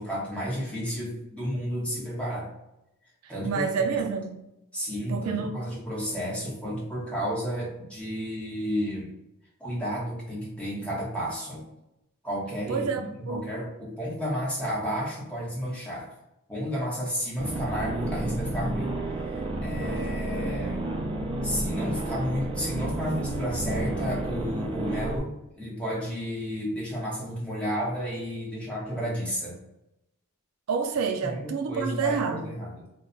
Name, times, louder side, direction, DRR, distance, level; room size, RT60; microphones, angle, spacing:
voice 1, 0.0-2.5 3.3-3.6 4.7-9.1 9.6-11.7 12.2-16.1 16.5-18.9 19.3-20.8 21.4-29.6 31.2-32.9, equal, 5° left, -6 dB, 0.9 m, -32 dB
voice 2, 3.4-4.4 5.1-5.6 12.7-13.4 30.7-32.5, right 5 dB, 85° right, 5 dB, 0.4 m, -28 dB
sound 1, 17.4-25.2, right 1 dB, 25° right, 0.4 m, -31 dB
2.2 x 2.2 x 3.7 m, 0.88 s
head